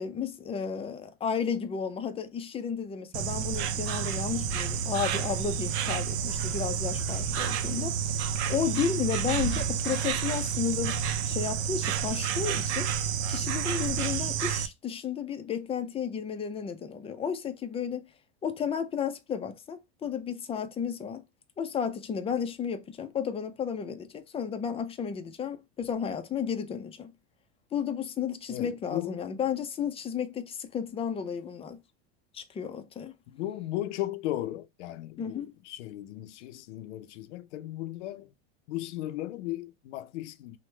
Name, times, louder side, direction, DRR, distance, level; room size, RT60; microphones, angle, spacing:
voice 1, 0.0-12.9 13.3-18.0 18.4-21.2 21.6-27.1 27.7-31.8 32.3-33.1 35.2-35.5, left 7 dB, 20° left, 0.4 m, -33 dB
Insect, 3.1-14.7, right 7 dB, 75° right, 0.5 m, -30 dB
voice 2, 28.5-29.2 33.3-38.3 38.7-40.6, left 14 dB, 90° left, 0.5 m, -36 dB
3.0 x 2.1 x 3.1 m
supercardioid pair, 120°, 34 cm